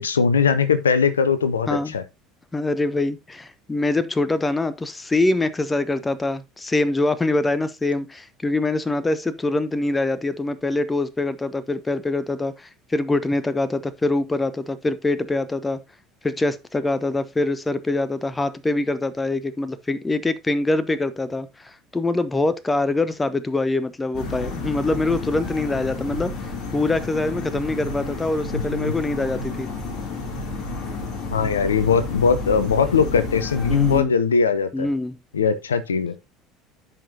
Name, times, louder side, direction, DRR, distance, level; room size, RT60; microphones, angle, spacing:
voice 1, 0.0-2.0 28.5-28.9 31.3-34.9 35.3-36.1, left 6 dB, 80° left, 0.6 m, -20 dB
voice 2, 2.5-15.8 16.2-26.3 26.7-29.7 33.7-34.1 34.7-35.2, left 2 dB, 15° left, 0.8 m, -24 dB
sound 1, 24.1-34.0, left 3 dB, 45° left, 2.8 m, -31 dB
12.0 x 5.1 x 2.7 m
figure-of-eight pair, 65°, 0 cm